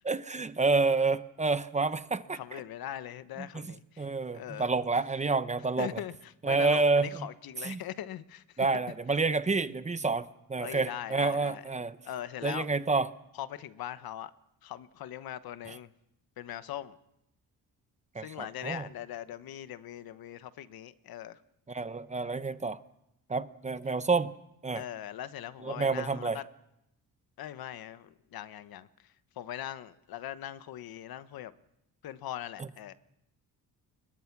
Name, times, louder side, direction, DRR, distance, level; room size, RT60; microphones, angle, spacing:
voice 1, 0.0-2.4 3.5-3.7 4.0-6.0 6.4-7.3 7.6-7.8 8.6-12.0 12.4-13.1 15.7-15.8 18.1-18.9 21.7-22.8 23.3-24.3 24.6-24.8 25.6-26.4, right 3 dB, 20° right, 12 dB, 0.8 m, -29 dB
voice 2, 2.3-4.7 5.8-8.7 10.6-11.6 12.0-12.7 13.3-14.3 14.6-15.9 16.4-17.0 18.2-21.4 24.7-26.4 27.4-31.5 32.0-32.9, left 11 dB, 75° left, 13 dB, 1.2 m, -41 dB
29.5 x 23.0 x 6.0 m, 0.84 s
cardioid pair, 135°, 36 cm